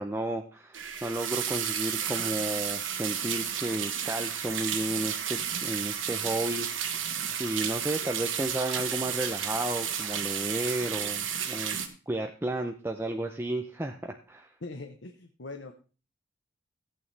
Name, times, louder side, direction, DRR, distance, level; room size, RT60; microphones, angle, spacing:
voice 1, 0.0-11.8 12.1-14.5, right 1 dB, 10° right, 4 dB, 0.6 m, -33 dB
sound 1, 0.7-11.9, right 8 dB, 80° right, 1.4 m, -32 dB
voice 2, 14.6-15.7, left 3 dB, 70° left, 5 dB, 1.0 m, -41 dB
14.0 x 8.8 x 3.3 m, 0.37 s
head